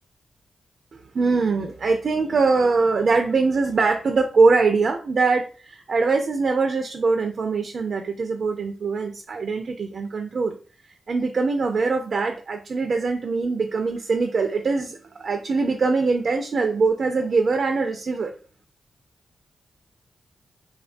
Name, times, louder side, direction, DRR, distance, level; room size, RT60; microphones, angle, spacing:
voice 1, 0.9-10.6 11.1-18.3, right 4 dB, 65° right, 5 dB, 0.3 m, -22 dB
2.3 x 2.2 x 2.5 m, 0.37 s
cardioid pair, 55°, 0 cm